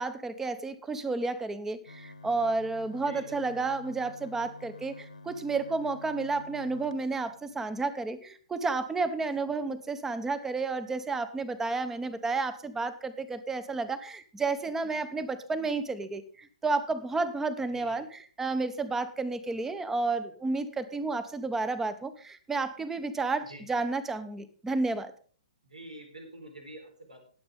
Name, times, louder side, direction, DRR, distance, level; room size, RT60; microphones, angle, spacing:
voice 1, 0.0-25.1, right 3 dB, 10° right, 13 dB, 1.1 m, -31 dB
sound 1, 1.9-7.8, left 3 dB, 80° left, 1.6 m, -49 dB
voice 2, 3.0-3.6 9.5-9.7 17.7-18.0 23.4-23.8 25.6-27.2, right 1 dB, 85° right, 3 dB, 4.2 m, -47 dB
19.5 x 7.9 x 3.6 m, 0.43 s
figure-of-eight pair, 120°, 4 cm